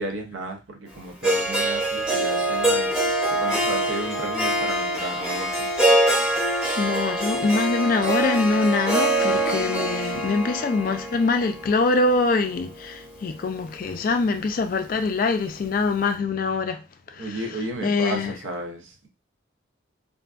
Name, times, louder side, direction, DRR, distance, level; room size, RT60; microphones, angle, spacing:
voice 1, 0.0-2.9 3.3-5.7 17.1-19.1, right 2 dB, 80° right, 0.6 m, -33 dB
Harp, 1.2-13.4, right 1 dB, 5° right, 0.7 m, -24 dB
voice 2, 6.8-16.8 17.2-17.3 17.8-18.3, left 3 dB, 45° left, 0.3 m, -24 dB
2.5 x 2.3 x 2.3 m
head